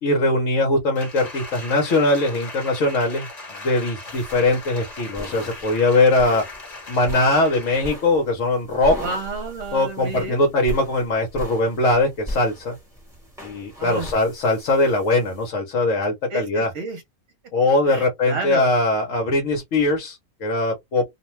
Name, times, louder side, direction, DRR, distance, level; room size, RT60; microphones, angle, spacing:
voice 1, 0.0-3.3 3.6-6.4 6.9-8.9 9.7-12.8 13.4-16.7 17.5-21.0, left 2 dB, 60° left, 1.0 m, -21 dB
Applause, 0.9-8.1 8.5-8.6, left 2 dB, 30° left, 1.0 m, -38 dB
sound 1, 4.1-15.5, left 1 dB, ahead, 1.0 m, -38 dB
voice 2, 9.0-10.5 13.8-14.1 16.3-17.0 17.9-18.7, right 3 dB, 55° right, 1.0 m, -31 dB
2.5 x 2.2 x 3.0 m
omnidirectional pair, 1.6 m